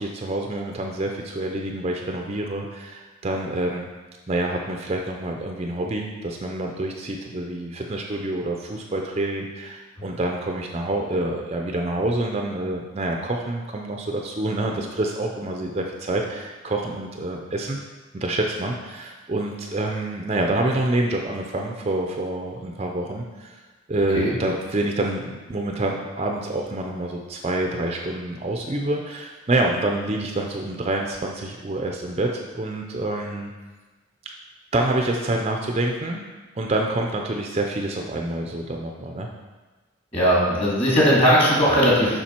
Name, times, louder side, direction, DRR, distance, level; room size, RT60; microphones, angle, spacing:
voice 1, 0.0-3.9 4.3-17.8 18.1-23.6 23.9-33.5 34.7-36.2 36.6-39.3, right 2 dB, 30° right, 1 dB, 0.5 m, -27 dB
voice 2, 40.1-42.2, equal, 30° left, -5 dB, 2.2 m, -18 dB
7.2 x 5.6 x 4.4 m, 1.3 s
head